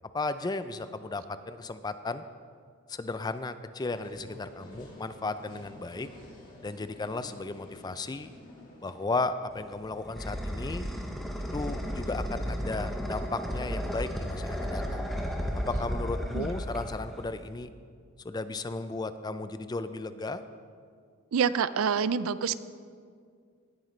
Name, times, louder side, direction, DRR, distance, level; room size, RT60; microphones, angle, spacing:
voice 1, 0.1-2.2 2.9-6.1 6.6-8.3 8.8-10.8 11.5-15.0 15.5-17.7 18.2-20.4, left 3 dB, 20° left, 12 dB, 0.3 m, -35 dB
sound 1, 3.9-9.0, left 1 dB, 40° left, 2.7 m, -50 dB
sound 2, 9.5-17.5, equal, ahead, 0.9 m, -34 dB
voice 2, 21.3-22.6, right 6 dB, 75° right, 15 dB, 0.4 m, -27 dB
18.0 x 8.8 x 3.2 m, 2.1 s
head